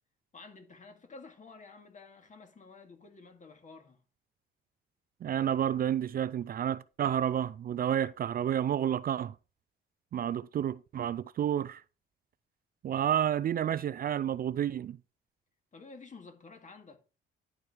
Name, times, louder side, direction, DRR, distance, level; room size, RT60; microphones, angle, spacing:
voice 1, 0.3-4.0 15.7-17.0, left 4 dB, 40° left, 2.2 m, -51 dB
voice 2, 5.2-9.3 10.1-11.8 12.8-15.0, right 10 dB, 50° right, 0.4 m, -30 dB
11.0 x 4.7 x 4.9 m
cardioid pair, 90°, 20 cm